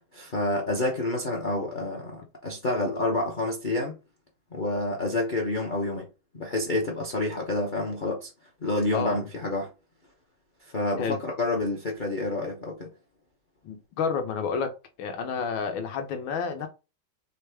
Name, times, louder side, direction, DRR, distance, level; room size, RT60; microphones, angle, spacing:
voice 1, 0.1-3.9 4.5-6.1 6.3-8.3 8.6-9.7 10.7-12.9, left 2 dB, 45° left, 0.6 m, -28 dB
voice 2, 8.9-9.2 11.0-11.2 13.6-14.7 15.0-16.7, left 6 dB, 75° left, 1.6 m, -30 dB
4.1 x 3.3 x 3.4 m
omnidirectional pair, 2.2 m